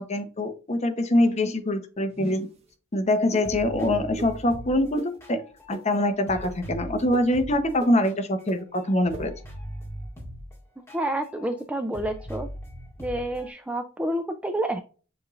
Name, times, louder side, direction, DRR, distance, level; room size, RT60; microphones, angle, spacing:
voice 1, 0.0-2.5 2.9-5.0 5.3-5.4 5.7-9.3, left 1 dB, 35° left, 0.7 m, -24 dB
sound 1, 2.1-2.6 3.3-3.5 4.2-4.3 5.0-5.1 5.7-5.8 6.4-6.5 7.1-7.2 7.8-7.9 8.5-8.6 9.1-9.2, right 1 dB, 30° right, 0.7 m, -37 dB
sound 2, 3.1-3.2 3.4-6.0 6.3-11.6 11.9-13.5, equal, 15° left, 1.9 m, -40 dB
voice 2, 10.9-12.5 13.0-14.8, right 1 dB, 5° right, 0.3 m, -29 dB
7.1 x 3.1 x 2.4 m
head